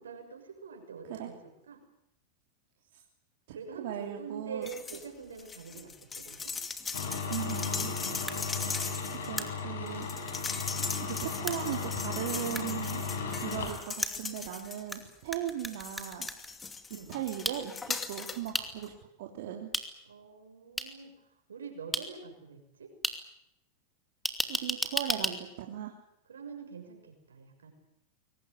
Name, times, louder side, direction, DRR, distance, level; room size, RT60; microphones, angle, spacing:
voice 1, 0.0-1.8 3.5-6.5 16.9-17.2 20.0-21.1 21.5-22.9 26.3-27.7, right 5 dB, 90° right, 5 dB, 6.4 m, -45 dB
voice 2, 3.5-4.7 6.9-7.0 7.3-7.9 8.6-8.9 9.2-10.5 11.0-13.0 13.4-16.3 17.1-18.9 19.2-19.7 24.5-25.9, right 11 dB, 65° right, 2 dB, 3.0 m, -38 dB
sound 1, 4.6-5.1 5.4-15.1 15.6-18.5 18.8-18.9, left 5 dB, 20° left, 2.1 m, -39 dB
sound 2, 6.9-13.9, left 5 dB, 80° left, 5.9 m, -36 dB
sound 3, 8.3-8.4 9.4-9.5 10.4-10.5 11.5-11.6 12.5-12.6 14.0-15.0 15.3-16.5 17.4-17.6 18.5-18.6 19.7-19.8 20.8-20.9 21.9-22.0 23.0-23.1 24.2-25.3, equal, ahead, 2.6 m, -32 dB
22.0 x 19.0 x 9.9 m, 0.80 s
hypercardioid pair, 105°, 0 cm